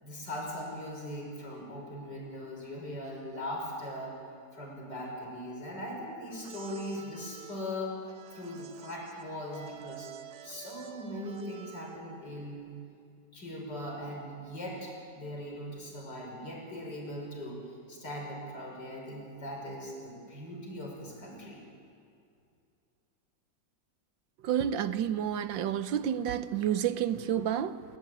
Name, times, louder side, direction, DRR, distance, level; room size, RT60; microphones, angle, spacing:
voice 1, 0.0-4.1 4.5-8.0 8.3-10.1 10.4-12.7 13.3-21.6, left 1 dB, 65° left, 6.3 m, -40 dB
sound 1, 6.3-12.2, right 10 dB, 60° right, 1.7 m, -49 dB
voice 2, 24.4-27.8, right 9 dB, 80° right, 1.5 m, -30 dB
28.5 x 14.0 x 9.2 m
omnidirectional pair, 2.0 m